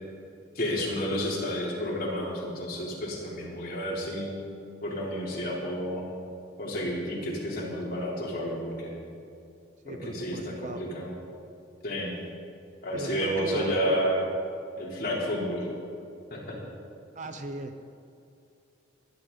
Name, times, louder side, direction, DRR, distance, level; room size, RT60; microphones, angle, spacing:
voice 1, 0.6-4.4 4.8-6.0 6.6-9.0 9.9-11.1 11.8-12.2 12.8-14.2 14.8-15.7 16.3-16.6, equal, 45° left, -5 dB, 3.6 m, -31 dB
voice 2, 9.8-10.9 12.9-14.0 17.2-17.7, right 2 dB, 40° right, 7 dB, 0.7 m, -38 dB
21.0 x 11.5 x 4.1 m, 2.6 s
head